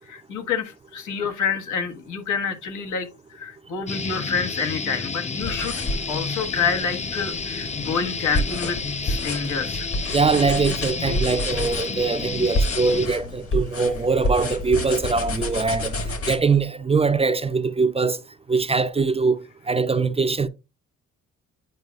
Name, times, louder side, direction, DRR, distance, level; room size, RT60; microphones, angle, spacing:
voice 1, 0.0-5.8 6.1-8.8 9.0-9.9, left 6 dB, 80° left, 1.4 m, -28 dB
sound 1, 3.9-13.1, left 4 dB, 25° left, 0.6 m, -30 dB
sound 2, 5.4-16.4, left 1 dB, 45° left, 1.6 m, -29 dB
voice 2, 10.1-16.0 16.3-18.2 18.5-20.5, right 4 dB, 20° right, 0.5 m, -22 dB
9.3 x 4.7 x 2.3 m
cardioid pair, 90°, 30 cm